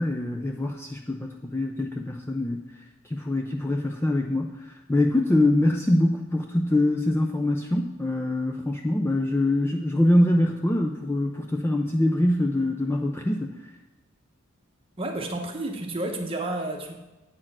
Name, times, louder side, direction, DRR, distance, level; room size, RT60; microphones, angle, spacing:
voice 1, 0.0-2.6 3.1-13.5, left 1 dB, 10° left, 2 dB, 0.3 m, -24 dB
voice 2, 15.0-16.9, right 2 dB, 25° right, 3 dB, 0.9 m, -31 dB
8.7 x 4.4 x 5.9 m, 1.1 s
head